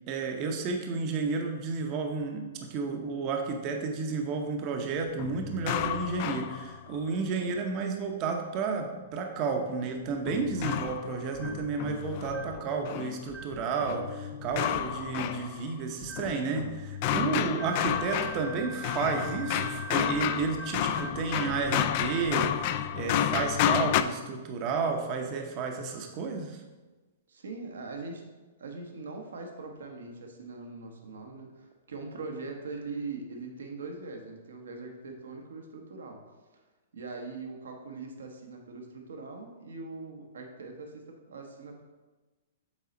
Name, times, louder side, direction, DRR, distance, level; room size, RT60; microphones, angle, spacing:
voice 1, 0.1-26.6, right 4 dB, 40° right, 3 dB, 0.7 m, -32 dB
sound 1, 5.2-7.1 10.3-13.2 13.8-15.8 16.2-24.0, left 10 dB, 45° left, 0.3 m, -31 dB
sound 2, 10.6-10.9 11.3-11.7 12.3-12.6 13.3-13.7 14.5-14.9 16.0-16.4 17.6-22.4, right 4 dB, 5° right, 0.8 m, -43 dB
voice 2, 17.3-17.7 27.3-28.3 28.6-36.2 36.5-36.6 36.9-41.8, right 3 dB, 80° right, 3 dB, 1.0 m, -41 dB
7.2 x 4.0 x 3.9 m, 1.2 s
hypercardioid pair, 120°, 0 cm